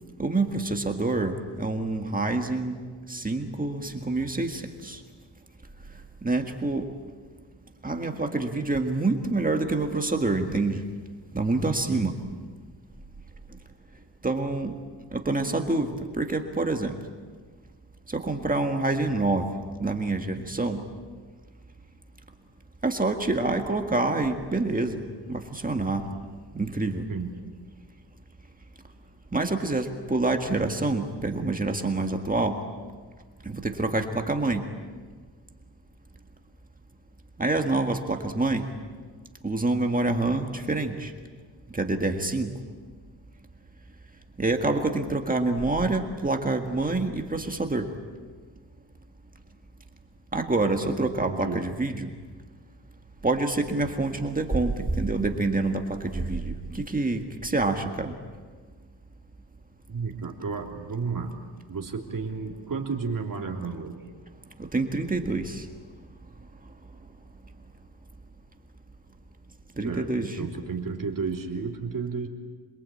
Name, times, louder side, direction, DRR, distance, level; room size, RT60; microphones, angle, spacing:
voice 1, 0.2-2.8 3.1-5.0 6.2-6.9 7.8-10.8 11.3-12.2 14.2-14.8 15.1-17.0 18.1-19.5 19.8-20.8 22.8-25.0 25.3-26.1 26.5-27.0 29.3-32.6 33.4-34.6 37.4-38.7 39.4-41.1 41.7-42.5 44.4-47.9 50.3-52.1 53.2-58.1 64.6-65.7 69.8-70.5, right 2 dB, 20° right, 4 dB, 1.8 m, -27 dB
voice 2, 11.9-12.2 27.1-27.3 51.0-51.6 59.9-61.3 61.7-64.0 69.8-72.3, right 5 dB, 50° right, 1 dB, 3.3 m, -32 dB
27.0 x 23.0 x 8.6 m, 1.5 s
wide cardioid pair, 155°, 42 cm